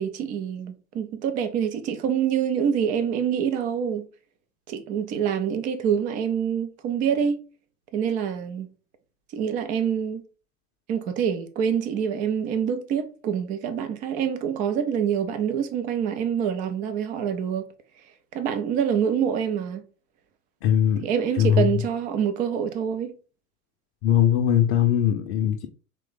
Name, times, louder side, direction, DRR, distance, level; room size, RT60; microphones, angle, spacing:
voice 1, 0.0-4.1 4.7-7.4 7.9-8.7 9.3-10.2 10.9-17.7 18.3-19.8 21.0-23.2, right 8 dB, 20° right, 0.3 m, -26 dB
voice 2, 20.6-21.0 21.4-21.8 24.0-25.7, left 10 dB, 40° left, 0.6 m, -20 dB
3.7 x 3.1 x 3.8 m
hypercardioid pair, 90°, 45 cm